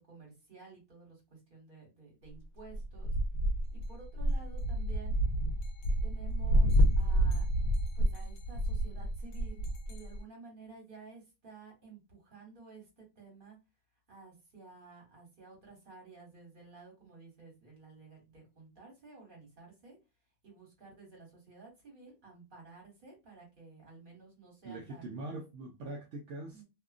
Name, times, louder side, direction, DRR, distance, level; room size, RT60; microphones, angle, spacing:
voice 1, 0.1-3.1 3.7-5.2 6.0-7.5 7.9-13.6 14.1-20.0 20.4-25.1 26.5-26.6, right 4 dB, 35° right, 1.5 m, -53 dB
sound 1, 2.7-10.2, right 1 dB, 75° left, 1.0 m, -29 dB
voice 2, 24.6-26.6, right 2 dB, 65° right, 0.8 m, -42 dB
2.8 x 2.3 x 2.4 m
omnidirectional pair, 1.5 m